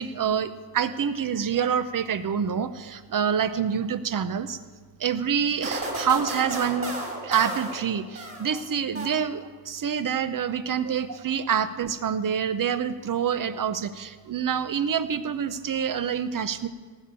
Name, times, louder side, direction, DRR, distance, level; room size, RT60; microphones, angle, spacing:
voice 1, 0.0-4.6 5.0-7.0 7.2-16.7, right 7 dB, 45° right, 13 dB, 0.7 m, -27 dB
sound 1, 5.6-8.6 8.9-9.6, right 1 dB, 25° right, 3.0 m, -34 dB
17.5 x 7.0 x 7.5 m, 1.4 s
cardioid pair, 120°, 48 cm